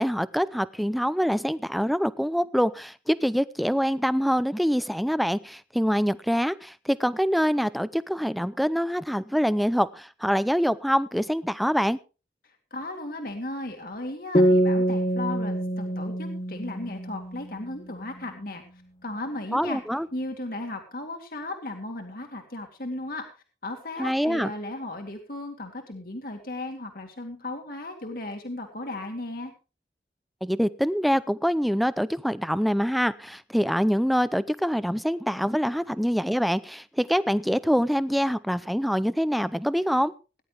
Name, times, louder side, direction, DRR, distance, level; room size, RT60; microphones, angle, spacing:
voice 1, 0.0-12.0 19.5-20.1 24.0-24.5 30.4-40.1, equal, ahead, 15 dB, 0.5 m, -25 dB
voice 2, 12.4-18.6 19.0-19.8 20.1-23.2 23.6-29.5, left 2 dB, 55° left, 4 dB, 2.1 m, -35 dB
sound 1, 14.3-17.8, right 1 dB, 35° left, 1.1 m, -25 dB
18.5 x 11.0 x 3.4 m, 0.32 s
head